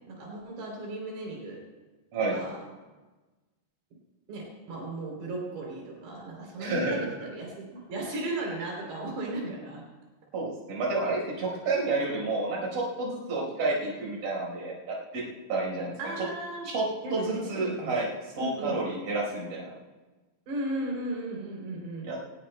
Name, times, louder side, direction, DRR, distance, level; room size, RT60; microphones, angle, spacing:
voice 1, 0.1-1.6 2.3-2.6 4.3-9.8 16.0-16.7 17.0-17.9 18.4-18.8 20.5-22.1, right 2 dB, 80° right, -2 dB, 5.5 m, -36 dB
voice 2, 6.6-7.1 10.3-15.2 15.5-16.3 16.6-16.8 17.1-18.1 18.4-19.7 22.0-22.2, right 2 dB, 40° right, -4 dB, 5.5 m, -30 dB
22.0 x 19.0 x 2.2 m, 1.2 s
omnidirectional pair, 4.8 m